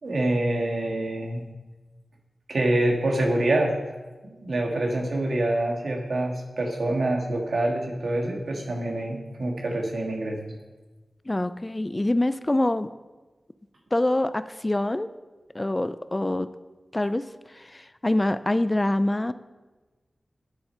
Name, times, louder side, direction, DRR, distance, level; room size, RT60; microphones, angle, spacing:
voice 1, 0.0-1.4 2.5-3.7 4.2-10.4, right 1 dB, 75° right, 1 dB, 1.7 m, -26 dB
voice 2, 11.3-12.9 13.9-15.1 15.5-16.5 16.9-19.3, left 1 dB, 25° left, 13 dB, 0.3 m, -25 dB
9.9 x 8.6 x 4.4 m, 1.2 s
wide cardioid pair, 80°, 0 cm